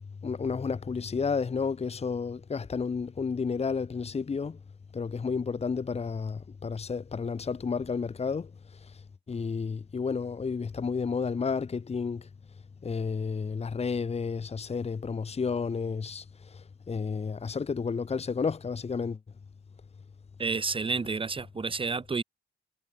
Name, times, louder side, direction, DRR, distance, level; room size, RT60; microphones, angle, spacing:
voice 1, 0.2-4.6 4.9-8.5 9.3-12.2 12.8-16.2 16.9-19.2, left 5 dB, 30° left, 1.6 m, -31 dB
voice 2, 20.4-22.2, right 4 dB, 25° right, 1.6 m, -30 dB
cardioid pair, 90°, 20 cm